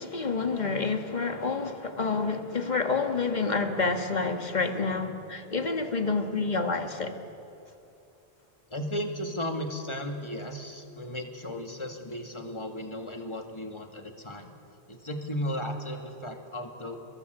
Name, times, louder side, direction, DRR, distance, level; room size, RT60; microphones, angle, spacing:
voice 1, 0.0-7.2, left 4 dB, 40° left, 1.8 m, -28 dB
voice 2, 8.7-14.5 14.9-16.9, equal, 25° left, 2.2 m, -35 dB
29.5 x 21.5 x 8.2 m
omnidirectional pair, 1.1 m